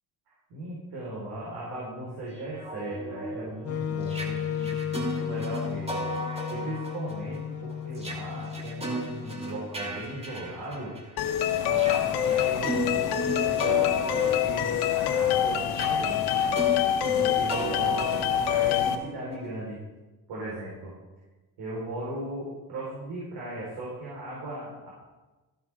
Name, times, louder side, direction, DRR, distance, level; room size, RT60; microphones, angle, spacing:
voice 1, 0.5-10.9 11.6-16.6 17.1-19.8 20.3-20.9 21.6-24.9, right 1 dB, 75° right, -6 dB, 4.7 m, -38 dB
sound 1, 2.4-11.2 11.7-19.5, right 1 dB, 15° right, 2.5 m, -36 dB
Wind instrument woodwind instrument, 3.6-9.7, left 9 dB, 40° left, 0.7 m, -34 dB
sound 2, 11.2-19.0, left 10 dB, 75° left, 1.2 m, -25 dB
14.5 x 12.5 x 3.7 m, 1.2 s
cardioid pair, 110°, 38 cm